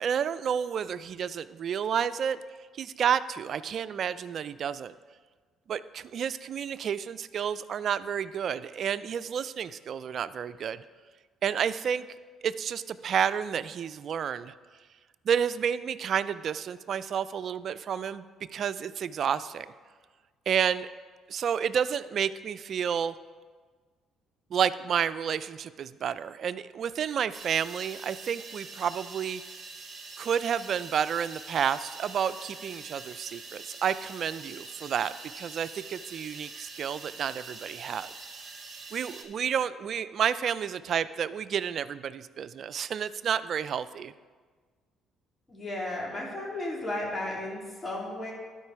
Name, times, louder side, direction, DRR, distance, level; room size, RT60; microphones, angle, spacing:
voice 1, 0.0-2.4 2.7-4.9 5.7-10.8 11.4-12.1 12.4-14.5 15.3-18.3 18.5-19.7 20.5-20.9 21.3-23.1 24.5-29.4 30.2-38.1 38.9-44.1, right 8 dB, 55° right, 15 dB, 0.3 m, -30 dB
sound 1, 27.3-39.2, right 4 dB, 40° right, 1.6 m, -44 dB
voice 2, 45.5-48.3, left 1 dB, 25° left, -4 dB, 2.9 m, -34 dB
12.0 x 5.0 x 4.6 m, 1.5 s
supercardioid pair, 75°, 0 cm